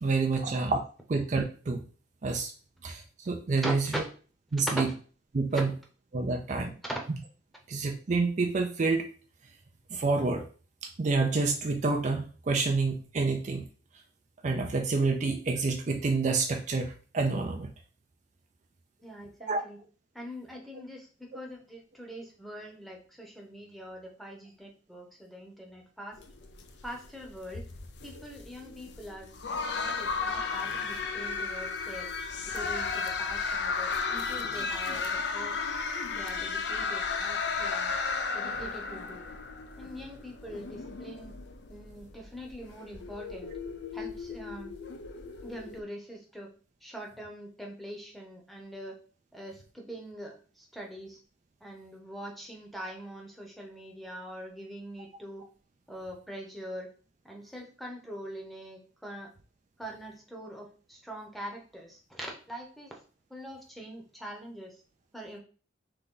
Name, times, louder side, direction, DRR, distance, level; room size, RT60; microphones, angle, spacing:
voice 1, 0.0-0.8 1.1-1.8 2.2-2.5 2.8-4.0 4.5-4.9 5.3-5.7 6.1-6.7 7.7-9.1 9.9-10.5 10.8-13.6 14.4-17.7 19.5-19.6, right 3 dB, 40° right, 4 dB, 0.4 m, -28 dB
voice 2, 3.6-4.0 5.5-5.6 6.3-6.4 19.0-19.8 20.1-26.2 26.8-27.7 28.0-29.4 29.7-32.1 32.5-35.6 36.0-37.9 38.3-39.3 39.8-41.4 41.7-43.5 43.9-44.7 45.4-46.5 46.8-49.0 49.3-51.2 51.6-55.5 55.9-56.9 57.2-59.3 59.8-63.0 63.3-64.8 65.1-65.4, equal, ahead, 0 dB, 0.9 m, -43 dB
sound 1, 26.2-45.8, left 4 dB, 60° left, 0.5 m, -34 dB
3.9 x 3.4 x 3.8 m, 0.39 s
head